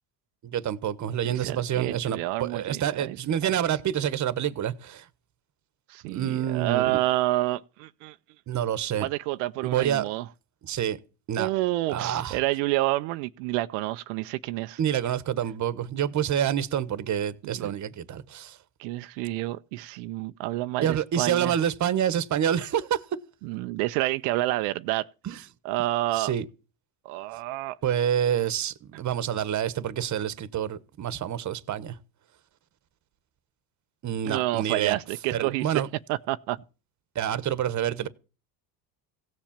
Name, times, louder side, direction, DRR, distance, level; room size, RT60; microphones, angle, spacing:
voice 1, 0.4-5.1 6.1-7.0 8.5-9.1 9.6-10.1 10.6-11.0 11.3-11.5 11.9-12.4 14.8-18.6 20.8-23.0 25.2-25.4 26.1-26.4 27.8-32.0 34.0-35.0 35.3-35.9 37.1-38.1, right 9 dB, 40° right, 1.1 m, -27 dB
voice 2, 1.2-3.2 3.4-3.5 5.9-8.2 9.0-10.3 11.4-14.8 17.4-17.7 18.8-21.5 23.4-26.3 27.0-27.8 34.2-35.8 36.1-36.6, right 17 dB, 85° right, 0.7 m, -29 dB
16.5 x 7.4 x 7.3 m
cardioid pair, 110°, 46 cm